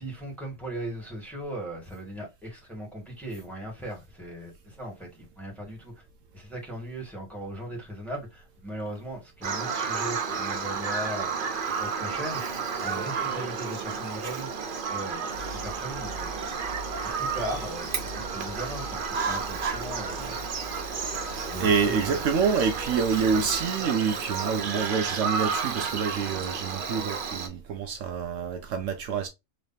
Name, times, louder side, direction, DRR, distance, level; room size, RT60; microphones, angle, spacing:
voice 1, 0.0-5.9 6.3-11.4 11.8-14.5 14.9-15.3 15.6-16.3 17.0-20.4 21.5-22.2, right 1 dB, ahead, 1.7 m, -38 dB
Bird vocalization bird call bird song, 9.4-27.5, right 5 dB, 50° right, 0.7 m, -32 dB
sound 1, 15.3-23.7, left 1 dB, 75° left, 1.3 m, -42 dB
voice 2, 19.6-20.5 21.6-29.3, right 6 dB, 70° right, 0.9 m, -27 dB
3.9 x 3.3 x 2.7 m
omnidirectional pair, 1.4 m